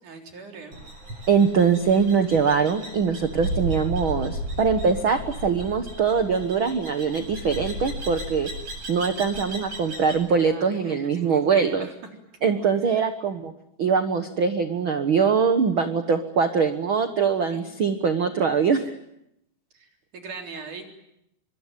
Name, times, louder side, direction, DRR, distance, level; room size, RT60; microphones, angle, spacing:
voice 1, 0.0-0.8 10.4-11.9 12.4-13.1 17.5-17.6 19.7-20.9, right 4 dB, 55° right, 3 dB, 5.1 m, -41 dB
sound 1, 0.7-10.2, right 1 dB, 35° right, 9.0 m, -35 dB
voice 2, 1.3-8.5 8.9-11.9 12.4-13.5 13.8-18.9, right 6 dB, 75° right, 8 dB, 1.1 m, -22 dB
25.5 x 23.5 x 9.3 m, 0.81 s
omnidirectional pair, 4.5 m